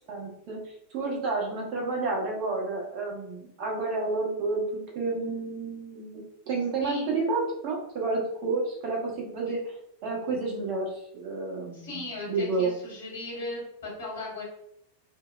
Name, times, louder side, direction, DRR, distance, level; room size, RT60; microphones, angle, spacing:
voice 1, 0.1-9.8 10.0-12.7, right 3 dB, 40° right, -1 dB, 0.8 m, -30 dB
voice 2, 6.8-7.1 11.7-14.4, left 2 dB, 65° left, -5 dB, 1.3 m, -37 dB
2.7 x 2.0 x 2.3 m, 0.75 s
figure-of-eight pair, 90°, 0 cm